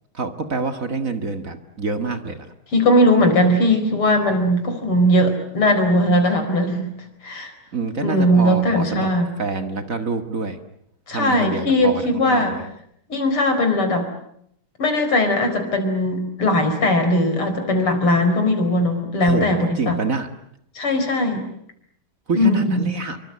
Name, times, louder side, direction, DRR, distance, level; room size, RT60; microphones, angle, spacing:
voice 1, 0.1-2.4 7.7-9.1 9.4-10.6 11.1-12.7 19.2-20.3 22.3-23.2, right 4 dB, 40° right, 8 dB, 2.1 m, -26 dB
voice 2, 2.7-6.9 7.2-7.5 8.0-9.3 11.1-12.5 13.1-14.1 14.8-20.0 20.8-21.4 22.3-22.9, left 1 dB, 85° left, 7 dB, 5.5 m, -19 dB
27.5 x 24.0 x 8.8 m, 0.71 s
omnidirectional pair, 2.3 m